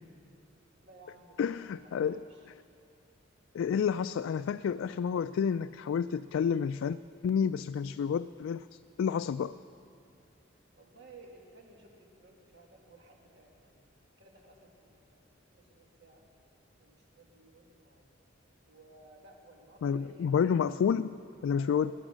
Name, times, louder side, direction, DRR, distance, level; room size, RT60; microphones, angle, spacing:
voice 1, 0.8-2.5 10.7-13.9 14.2-16.3 16.8-18.1 18.7-20.7 21.6-21.8, right 2 dB, 60° right, 1 dB, 2.0 m, -57 dB
voice 2, 1.4-2.2 3.5-7.0 7.2-8.6 9.0-9.6 19.8-21.2 21.4-21.9, left 7 dB, 85° left, 12 dB, 0.3 m, -29 dB
19.0 x 11.0 x 6.2 m, 2.5 s
head